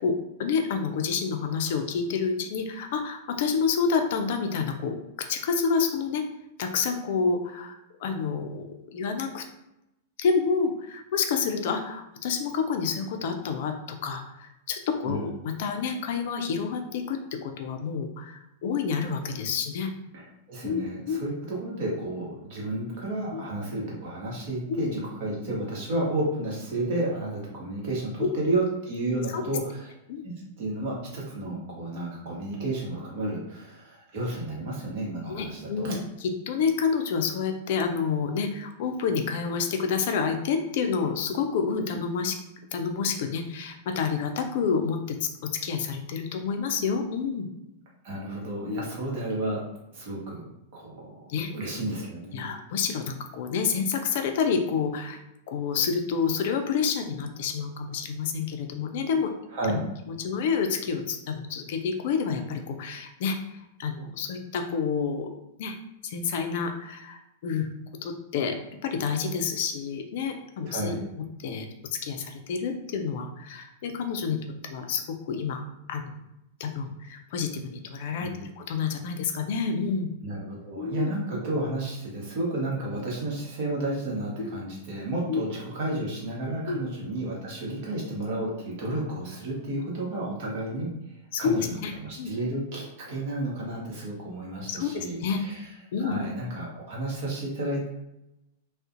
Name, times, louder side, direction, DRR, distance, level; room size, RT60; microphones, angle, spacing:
voice 1, 0.0-5.0 5.3-6.2 6.6-9.4 10.2-19.9 20.6-20.8 21.1-21.2 23.3-23.4 24.7-24.8 28.2-28.4 29.3-29.4 30.1-30.3 33.2-33.3 35.3-42.4 42.7-45.2 45.4-47.5 48.7-48.9 51.3-51.5 52.3-55.2 55.5-59.3 59.7-59.8 60.1-65.3 65.6-65.7 66.0-67.7 68.0-68.6 68.8-71.0 71.4-71.7 72.0-74.4 74.7-75.6 75.9-76.2 76.6-78.3 78.6-80.1 80.8-81.1 84.4-84.5 85.3-85.4 86.7-86.8 91.3-91.5 91.8-91.9 92.2-92.3 94.7-95.4 95.9-96.1, left 5 dB, 55° left, 5 dB, 0.3 m, -28 dB
voice 2, 20.1-29.9 30.2-30.3 30.6-36.0 48.0-49.6 49.9-50.5 50.7-52.5 59.5-59.8 70.7-71.0 78.2-78.4 80.2-95.7 96.0-97.9, right 2 dB, 55° right, -3 dB, 0.9 m, -32 dB
2.4 x 2.0 x 2.5 m, 0.88 s
figure-of-eight pair, 95°, 0 cm